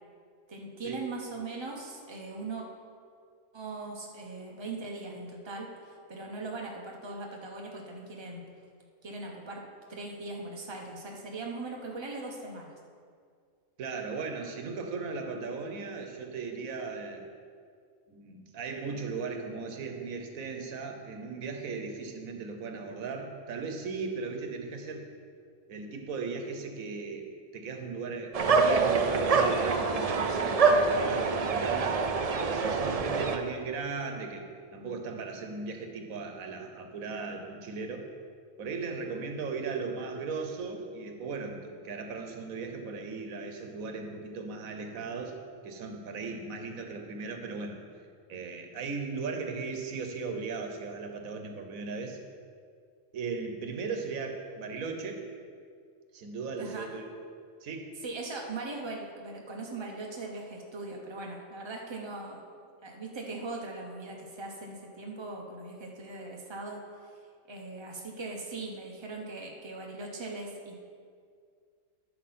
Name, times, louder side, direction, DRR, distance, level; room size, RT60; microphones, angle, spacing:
voice 1, 0.5-2.6 3.5-8.4 9.0-9.6 9.9-12.7 56.6-56.9 58.0-62.4 62.8-67.1 67.5-70.7, right 3 dB, 20° right, 0 dB, 1.0 m, -40 dB
voice 2, 13.8-17.3 18.1-25.1 25.7-27.3 27.5-30.6 30.9-32.0 32.5-38.1 38.6-45.4 45.6-47.8 48.3-52.2 53.1-55.2 56.1-57.1 57.6-57.9, right 4 dB, 85° right, 4 dB, 1.3 m, -37 dB
sound 1, 28.3-33.4, right 4 dB, 60° right, 0.4 m, -25 dB
11.0 x 6.7 x 4.3 m, 2.2 s
omnidirectional pair, 1.4 m